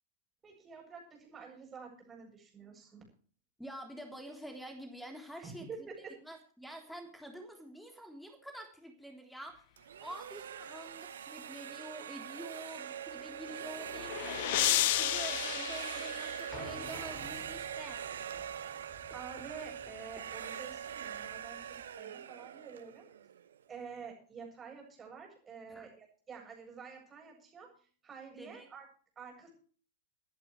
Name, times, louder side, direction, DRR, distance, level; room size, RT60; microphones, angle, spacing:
voice 1, 0.4-3.1 5.4-6.1 19.1-23.1 23.7-28.8 29.2-29.5, right 5 dB, 20° right, 1 dB, 8.0 m, -49 dB
voice 2, 3.6-5.7 6.2-9.7 10.0-18.0 25.7-25.9 28.3-28.7, equal, ahead, 4 dB, 3.5 m, -48 dB
sound 1, 9.8-23.6, right 9 dB, 70° right, 1.1 m, -43 dB
sound 2, 13.5-16.8, left 16 dB, 55° left, 0.7 m, -33 dB
sound 3, 16.5-21.9, left 1 dB, 15° left, 6.9 m, -52 dB
24.0 x 11.0 x 3.2 m, 0.43 s
figure-of-eight pair, 100°, 0 cm